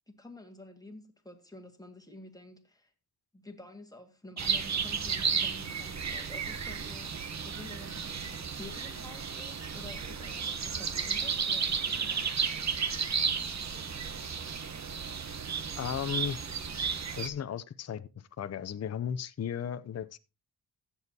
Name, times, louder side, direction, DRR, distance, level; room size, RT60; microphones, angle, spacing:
voice 1, 0.1-2.9 3.3-12.3, left 2 dB, 10° left, 1.9 m, -50 dB
sound 1, 4.4-17.3, right 6 dB, 45° right, 1.0 m, -33 dB
voice 2, 15.8-16.4 17.2-18.1 18.4-20.2, left 8 dB, 40° left, 0.6 m, -35 dB
16.0 x 7.2 x 2.8 m
wide cardioid pair, 95°, 40 cm